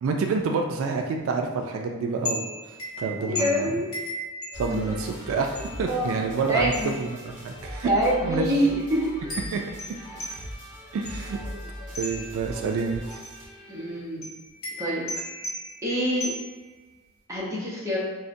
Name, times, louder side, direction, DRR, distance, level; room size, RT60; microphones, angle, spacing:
voice 1, 0.0-2.5 3.0-3.7 4.5-7.9 8.2-8.5 9.5-9.6 10.9-11.4 12.0-13.2, right 4 dB, 80° right, 4 dB, 0.3 m, -28 dB
sound 1, 2.3-5.1 5.6-6.0 6.7-7.2 8.0-8.1 9.3-11.4 12.0-12.5 13.1-13.5 14.2-16.8, left 1 dB, 85° left, 1.0 m, -36 dB
voice 2, 3.2-3.9 4.7-4.9 5.8-7.0 7.8-9.1 11.4-11.5 13.7-14.2 14.8-15.1 15.8-16.3 17.3-18.0, equal, 15° right, -6 dB, 0.7 m, -26 dB
sound 2, 4.5-14.0, equal, 35° right, 1.4 m, -40 dB
3.9 x 2.1 x 2.5 m, 1.3 s
head